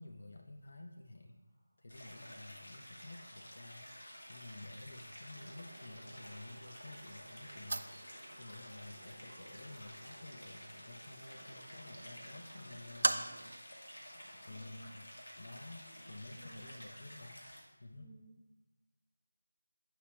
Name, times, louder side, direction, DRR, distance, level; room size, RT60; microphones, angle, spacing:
voice 1, 0.0-1.4 1.8-14.0 14.4-15.1 15.4-17.4 17.8-18.1, left 2 dB, 55° left, 3 dB, 0.7 m, -52 dB
sound 1, 1.1-16.4, equal, ahead, 1.8 m, -69 dB
Stream, 1.9-17.6, equal, 80° left, 2.0 m, -52 dB
sound 2, 5.3-13.6, right 2 dB, 55° right, 0.4 m, -43 dB
voice 2, 14.4-14.9 16.4-16.8 18.0-18.3, right 1 dB, 20° left, -3 dB, 1.1 m, -58 dB
8.2 x 5.7 x 2.8 m, 1.1 s
figure-of-eight pair, 170°, 0 cm